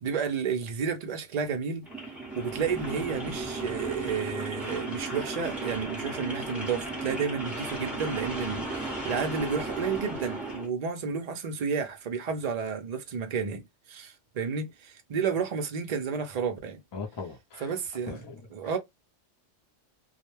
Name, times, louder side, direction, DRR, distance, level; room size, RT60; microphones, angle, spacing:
voice 1, 0.0-1.8 2.4-13.6 13.9-16.8 17.6-18.2 18.5-18.8, right 6 dB, 50° right, 0.5 m, -31 dB
sound 1, 1.8-10.7, right 2 dB, ahead, 0.9 m, -35 dB
voice 2, 16.9-17.7 18.1-18.5, left 4 dB, 30° left, 0.5 m, -39 dB
2.4 x 2.1 x 3.0 m
omnidirectional pair, 1.3 m